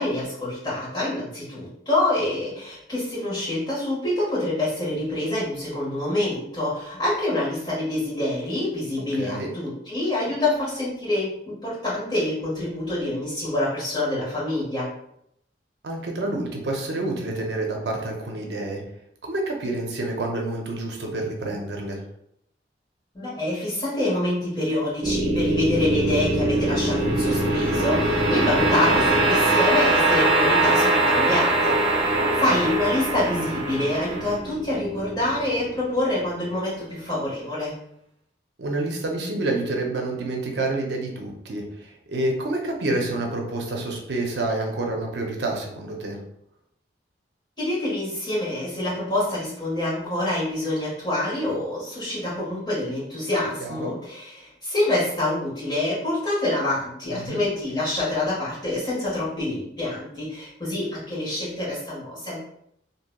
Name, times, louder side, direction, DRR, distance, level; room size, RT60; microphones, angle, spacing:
voice 1, 0.0-14.9 23.1-37.8 47.6-62.4, left 1 dB, 25° left, -9 dB, 1.5 m, -26 dB
voice 2, 9.2-9.6 15.8-18.8 19.2-22.0 32.2-32.4 38.6-46.2 53.6-53.9 57.1-57.4, right 2 dB, 80° right, 1 dB, 0.6 m, -28 dB
sound 1, 25.0-36.2, right 2 dB, 30° right, 0.8 m, -22 dB
2.9 x 2.7 x 2.2 m, 0.74 s
head